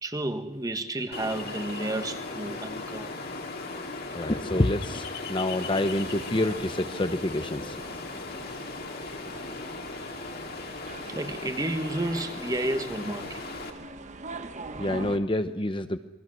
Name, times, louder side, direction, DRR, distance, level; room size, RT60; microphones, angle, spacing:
voice 1, 0.0-3.2 11.1-13.5, right 1 dB, 20° right, 1.4 m, -31 dB
Ocean, 1.1-13.7, left 3 dB, 50° left, 2.7 m, -37 dB
voice 2, 4.1-7.8 14.8-16.0, left 1 dB, 25° left, 0.9 m, -27 dB
sound 1, 5.9-15.2, right 3 dB, 35° right, 1.2 m, -43 dB
28.5 x 21.5 x 6.3 m
head